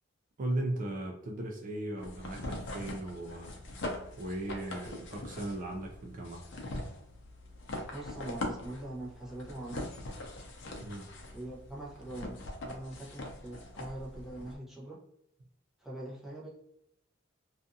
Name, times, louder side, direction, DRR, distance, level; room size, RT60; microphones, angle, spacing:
voice 1, 0.4-3.5 4.2-6.4 10.8-11.1, right 1 dB, 40° right, 1 dB, 0.4 m, -37 dB
sound 1, 2.0-14.6, left 1 dB, 65° left, 0.6 m, -42 dB
voice 2, 7.9-10.1 11.3-15.0 15.8-16.5, right 1 dB, ahead, -6 dB, 0.7 m, -43 dB
2.5 x 2.4 x 2.6 m, 0.78 s
head